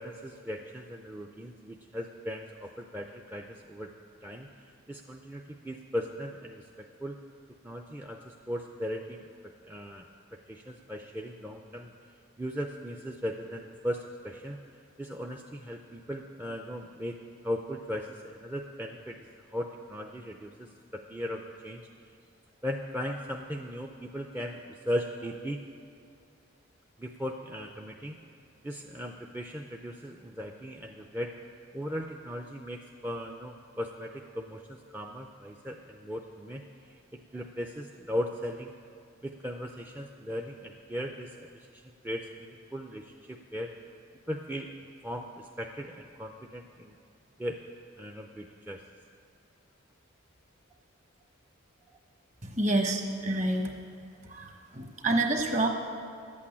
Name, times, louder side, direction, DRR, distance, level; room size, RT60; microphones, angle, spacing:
voice 1, 0.0-3.9 4.2-7.2 7.6-10.1 10.5-11.9 12.4-14.6 15.0-19.2 19.5-21.9 22.6-25.6 27.0-28.2 28.6-31.3 31.7-37.0 37.3-38.7 39.2-43.7 44.3-44.7 45.0-47.0 47.4-47.6 48.0-48.8, equal, 10° right, 1 dB, 0.4 m, -38 dB
voice 2, 52.4-53.7 54.3-55.7, right 2 dB, 35° right, 4 dB, 1.2 m, -28 dB
11.5 x 8.5 x 8.6 m, 2.3 s
head